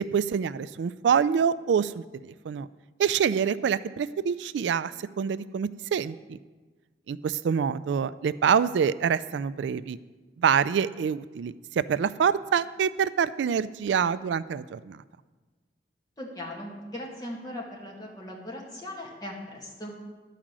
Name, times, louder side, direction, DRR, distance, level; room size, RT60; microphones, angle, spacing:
voice 1, 0.0-2.7 3.0-6.4 7.1-10.0 10.4-15.0, right 7 dB, 80° right, 16 dB, 0.3 m, -26 dB
voice 2, 16.2-19.9, left 1 dB, 20° left, -3 dB, 2.0 m, -39 dB
11.5 x 5.0 x 7.4 m, 1.3 s
head